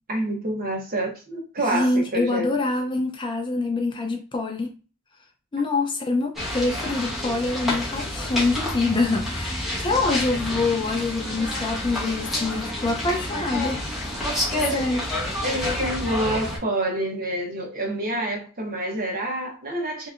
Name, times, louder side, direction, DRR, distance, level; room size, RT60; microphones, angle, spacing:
voice 1, 0.1-2.6 5.6-5.7 14.5-14.9 15.4-20.1, right 1 dB, 40° right, 0.9 m, -28 dB
voice 2, 1.7-4.7 5.5-13.8 14.7-15.0, left 3 dB, 20° left, 0.4 m, -25 dB
sound 1, 6.4-16.6, left 1 dB, ahead, 0.9 m, -29 dB
3.1 x 2.8 x 2.4 m
head